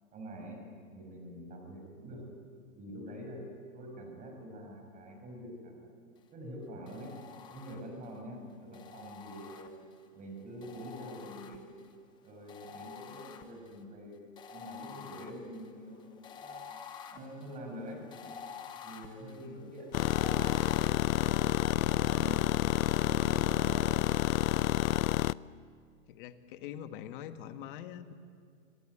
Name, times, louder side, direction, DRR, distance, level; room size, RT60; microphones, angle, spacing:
voice 1, 0.1-0.6 0.9-2.3 2.7-3.4 3.7-5.9 6.3-7.2 7.5-9.7 10.1-11.6 12.2-14.2 14.5-16.1 16.4-16.6 17.1-18.0 18.8-22.5 23.0-24.0, equal, 20° right, 2 dB, 6.3 m, -45 dB
sound 1, 6.9-8.1 8.7-10.1 10.6-11.9 12.5-13.8 14.4-20.9, left 7 dB, 10° left, 0.8 m, -48 dB
voice 2, 19.4-19.7 26.1-28.1, left 10 dB, 35° left, 9 dB, 1.5 m, -44 dB
sound 2, 19.9-25.3, left 14 dB, 75° left, 0.6 m, -28 dB
25.0 x 20.5 x 9.9 m, 2.3 s
hypercardioid pair, 155°, 42 cm